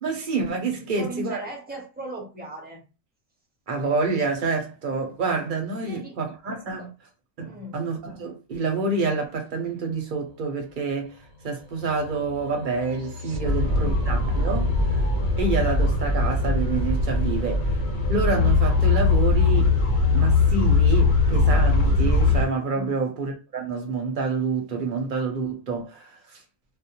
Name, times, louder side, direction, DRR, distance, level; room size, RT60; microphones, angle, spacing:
voice 1, 0.0-1.4 3.7-6.9 7.4-11.1 11.4-14.7 15.4-17.8 18.1-19.7 20.1-26.4, right 4 dB, 50° right, 0.7 m, -27 dB
voice 2, 0.8-2.8 5.8-6.2 6.8-6.9 7.5-7.8 13.4-14.0 22.7-23.0, right 1 dB, 10° right, 0.6 m, -38 dB
sound 1, 9.5-20.4, left 5 dB, 85° left, 0.9 m, -41 dB
sound 2, 9.9-10.0 10.2-18.5, right 2 dB, 80° right, 0.9 m, -32 dB
sound 3, 13.4-22.5, left 3 dB, 60° left, 1.0 m, -21 dB
2.4 x 2.0 x 2.8 m
omnidirectional pair, 1.2 m